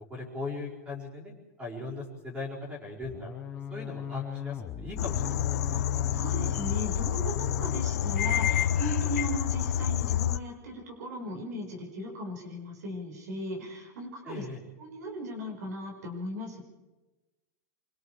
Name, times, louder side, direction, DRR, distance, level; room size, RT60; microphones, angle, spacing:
voice 1, 0.1-1.3 1.6-3.3 3.7-5.9 14.2-14.6, left 3 dB, 10° right, -3 dB, 4.7 m, -39 dB
sound 1, 3.0-7.9, left 8 dB, 15° left, 0.9 m, -39 dB
sound 2, 5.0-10.4, left 10 dB, 65° left, 0.7 m, -28 dB
voice 2, 6.1-14.4 14.8-16.6, equal, 80° right, 0 dB, 6.0 m, -37 dB
25.5 x 24.0 x 5.0 m, 1.2 s
supercardioid pair, 175°, 9 cm